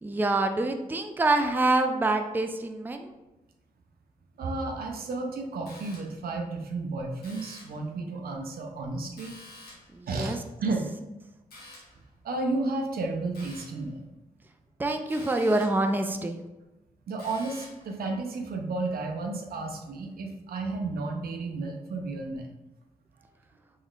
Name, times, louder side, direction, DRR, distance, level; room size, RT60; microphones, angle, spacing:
voice 1, 0.0-3.1 9.9-10.4 14.8-16.4, right 2 dB, 10° right, 6 dB, 0.4 m, -26 dB
voice 2, 4.4-9.4 10.1-10.9 12.2-14.1 17.1-22.5, right 3 dB, 75° right, 2 dB, 0.6 m, -32 dB
sound 1, 5.7-6.3 7.2-7.9 9.2-10.0 11.5-12.0 13.3-13.9 15.1-15.9 17.2-17.9, left 1 dB, 80° left, 1.0 m, -49 dB
3.7 x 3.1 x 2.4 m, 1.0 s
supercardioid pair, 45°, 16 cm